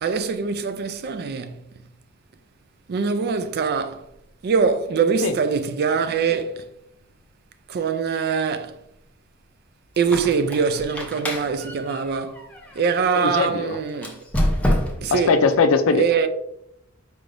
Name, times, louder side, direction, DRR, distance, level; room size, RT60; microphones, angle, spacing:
voice 1, 0.0-1.6 2.9-4.0 4.4-6.6 7.7-8.8 10.0-12.4 12.8-14.2 15.0-15.4 16.0-16.3, right 5 dB, 50° right, 0.4 m, -23 dB
Squeak, 10.0-13.1 13.9-15.2, equal, 5° left, 0.6 m, -27 dB
voice 2, 13.2-13.8 15.1-16.0, left 4 dB, 80° left, 0.4 m, -20 dB
4.6 x 3.3 x 2.5 m
head